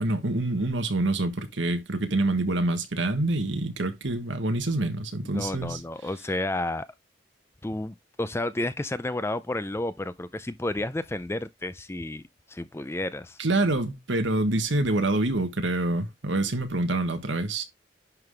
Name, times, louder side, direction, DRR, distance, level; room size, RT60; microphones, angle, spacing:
voice 1, 0.0-5.8 13.4-17.6, right 2 dB, 70° right, 1.3 m, -26 dB
voice 2, 5.3-6.9 7.6-12.2 12.5-13.4, left 1 dB, 15° left, 0.4 m, -31 dB
10.5 x 3.9 x 3.2 m
head